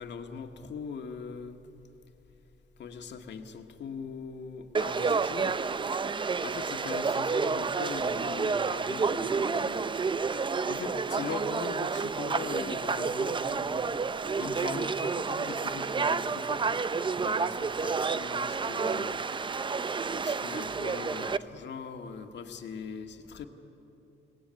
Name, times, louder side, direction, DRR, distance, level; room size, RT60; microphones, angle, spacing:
voice 1, 0.0-1.6 2.8-5.6 6.4-9.9 10.7-14.0 14.4-19.2 20.1-23.5, left 6 dB, 60° left, 5 dB, 1.9 m, -41 dB
Conversation / Crowd, 4.7-21.4, right 5 dB, 25° right, 0.5 m, -30 dB
23.0 x 18.0 x 9.7 m, 2.9 s
cardioid pair, 90°, 20 cm